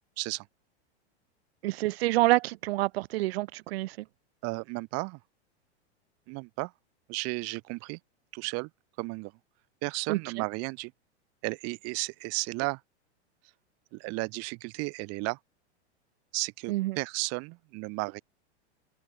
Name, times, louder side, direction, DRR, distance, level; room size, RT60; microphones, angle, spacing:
voice 1, 0.2-0.5 4.4-5.2 6.3-6.7 7.1-8.0 8.3-8.7 9.0-9.3 9.8-10.9 11.4-12.8 13.9-15.4 16.3-18.2, right 28 dB, 45° right, 3.2 m, -34 dB
voice 2, 1.6-4.1 10.1-10.2 16.7-17.0, right 18 dB, 65° right, 2.1 m, -27 dB
open air
hypercardioid pair, 125°, 34 cm